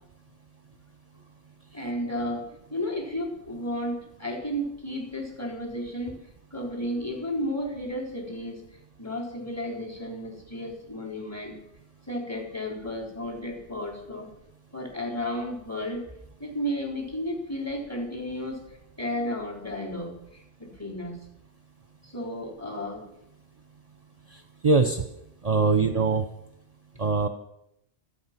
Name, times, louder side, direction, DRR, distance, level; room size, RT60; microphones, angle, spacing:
voice 1, 1.7-6.2 6.5-8.6 9.0-11.6 12.1-14.3 14.7-16.0 16.4-18.6 19.0-21.2 22.0-23.1 25.7-26.0, equal, 15° left, 1 dB, 3.7 m, -33 dB
voice 2, 24.3-25.0 25.4-26.2 27.0-27.3, right 4 dB, 40° right, 8 dB, 0.9 m, -22 dB
25.5 x 8.6 x 5.8 m, 0.78 s
omnidirectional pair, 1.1 m